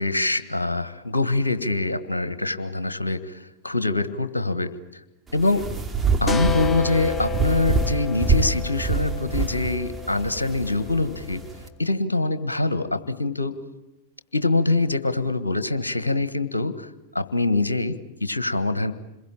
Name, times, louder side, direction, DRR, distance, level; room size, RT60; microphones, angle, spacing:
voice 1, 0.0-4.7 5.3-5.7 6.2-11.4 11.8-13.6 14.3-16.9 17.1-18.9, left 2 dB, 85° left, 13 dB, 1.5 m, -24 dB
sound 1, 5.3-11.7, right 4 dB, 10° right, 2.8 m, -26 dB
sound 2, 6.3-11.7, left 5 dB, 15° left, 1.0 m, -32 dB
27.5 x 22.0 x 8.9 m, 0.92 s
figure-of-eight pair, 95°, 0 cm